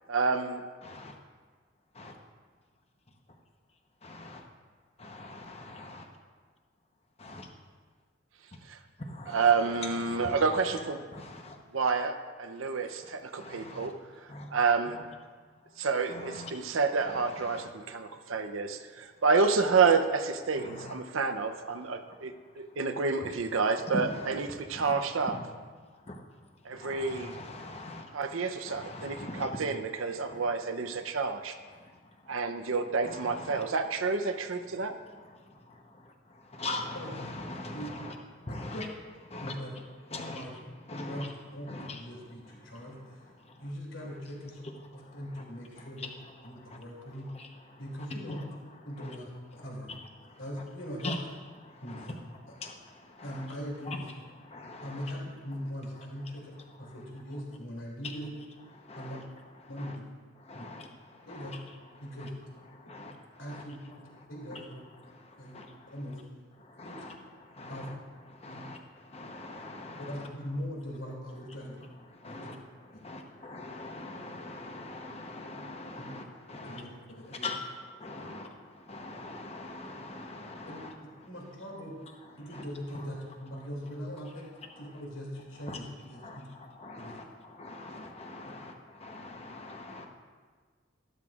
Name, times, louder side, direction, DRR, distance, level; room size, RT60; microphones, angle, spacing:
voice 1, 0.1-0.6 9.3-11.0 11.7-14.0 14.5-15.0 15.8-25.4 26.6-27.3 28.1-31.5 32.3-35.0, right 4 dB, 90° right, 7 dB, 0.7 m, -29 dB
voice 2, 0.8-1.1 2.0-2.1 4.0-4.4 5.0-6.1 7.2-7.5 9.0-11.6 13.0-13.1 13.4-13.9 14.3-14.5 14.9-15.1 16.1-16.5 17.0-17.7 20.5-21.0 23.2-23.3 23.9-24.3 24.7-25.0 25.3-25.4 26.0-26.2 26.7-29.6 30.3-30.4 31.0-31.2 31.6-32.7 33.0-33.6 34.7-38.9 39.3-39.6 40.1-40.4 40.9-41.3 41.7-42.0 42.6-43.1 43.4-43.6 44.8-45.2 45.8-46.1 46.4-47.8 48.3-48.5 49.0-49.2 49.5-49.7 50.2-50.4 51.0-51.2 51.6-52.1 52.4-53.5 53.8-54.1 54.4-55.1 56.6-56.9 58.8-59.2 59.6-60.0 60.4-62.3 62.7-63.6 64.2-64.6 65.0-66.0 66.6-68.0 68.3-70.3 72.1-80.9 81.2-81.3 82.1-82.2 82.5-82.6 82.9-83.1 84.7-85.0 85.7-85.8 86.1-90.1, left 2 dB, 30° left, 3 dB, 0.9 m, -43 dB
voice 3, 36.9-37.3 37.7-37.9 38.5-38.9 39.4-39.7 40.3-40.5 41.1-43.3 43.6-44.7 45.1-46.0 46.4-47.3 47.8-48.4 48.8-49.9 50.4-51.2 51.8-52.1 52.5-52.6 53.2-54.0 54.8-56.5 56.8-58.3 58.9-59.2 59.7-60.0 60.5-60.7 61.3-61.5 62.0-62.3 63.0-63.1 63.4-63.8 64.3-64.8 65.4-65.6 65.9-66.2 66.8-67.0 67.6-67.9 68.5-68.6 70.0-71.8 72.2-72.5 72.9-73.0 76.0-76.1 76.5-76.9 77.2-77.5 78.2-78.3 80.7-80.8 81.2-82.0 82.4-84.4 84.8-86.4 87.0-87.2 88.4-88.5, equal, 80° left, -3 dB, 2.7 m, -41 dB
12.5 x 12.0 x 2.4 m, 1.5 s
head